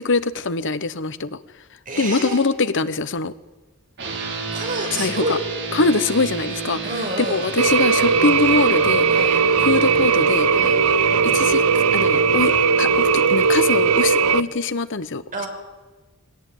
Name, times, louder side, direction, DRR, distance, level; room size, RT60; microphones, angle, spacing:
voice 1, 0.0-1.4 2.0-3.3 4.9-5.4 5.7-6.8 7.2-10.8 11.2-11.6 11.9-15.2, left 3 dB, 55° left, 13 dB, 1.0 m, -23 dB
voice 2, 1.9-2.4 4.5-5.4 6.8-7.5 8.2-8.4 9.1-9.4 10.6-10.8 14.2-14.4 15.3-15.5, right 2 dB, 35° right, 2 dB, 5.7 m, -29 dB
sound 1, 4.0-13.9, right 5 dB, 55° right, 3.7 m, -30 dB
sound 2, 7.6-14.4, right 5 dB, 80° right, 0.8 m, -18 dB
22.0 x 18.0 x 9.2 m, 1.2 s
head